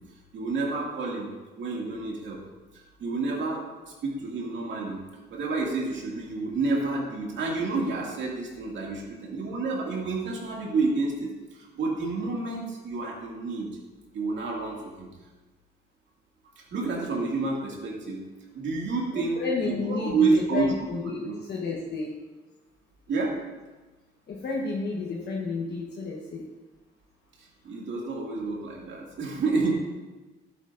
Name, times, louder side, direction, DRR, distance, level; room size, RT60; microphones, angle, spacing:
voice 1, 0.3-2.4 2.7-13.7 14.1-15.1 16.6-18.2 18.5-20.7 21.2-21.3 23.1-23.4 27.4-29.7, right 3 dB, 70° right, -2 dB, 2.3 m, -29 dB
voice 2, 19.1-22.1 24.3-26.5, left 4 dB, 55° left, -2 dB, 1.2 m, -31 dB
11.0 x 8.9 x 2.6 m, 1.2 s
cardioid pair, 90°, 20 cm